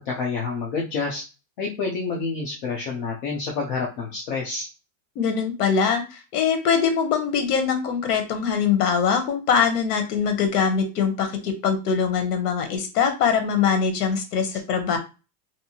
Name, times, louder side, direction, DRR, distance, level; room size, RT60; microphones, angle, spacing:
voice 1, 0.1-1.2 1.6-4.7, left 4 dB, 35° left, -2 dB, 0.4 m, -28 dB
voice 2, 5.2-6.0 6.3-15.0, left 6 dB, 70° left, 6 dB, 0.9 m, -22 dB
2.6 x 2.3 x 2.8 m, 0.31 s
supercardioid pair, 160°, 48 cm